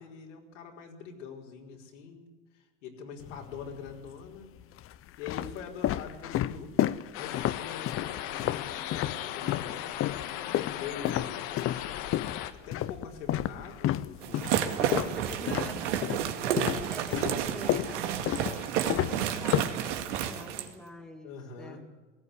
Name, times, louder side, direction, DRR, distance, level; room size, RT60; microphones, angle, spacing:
voice 1, 0.0-2.3 2.5-4.5 4.8-6.9 7.2-9.8 10.7-11.4 12.6-14.7 21.2-21.8, left 6 dB, 80° left, 0 dB, 4.8 m, -44 dB
sound 1, 3.2-3.9 4.6-9.7 10.0-16.3 16.6-20.3, left 13 dB, 35° left, 0.8 m, -31 dB
sound 2, 7.1-12.5, left 12 dB, 60° left, 1.6 m, -37 dB
sound 3, 14.2-20.7, right 9 dB, 75° right, 2.1 m, -31 dB
voice 2, 14.8-21.8, left 1 dB, ahead, 4 dB, 2.1 m, -46 dB
19.0 x 15.0 x 9.6 m, 1.2 s
supercardioid pair, 105°, 36 cm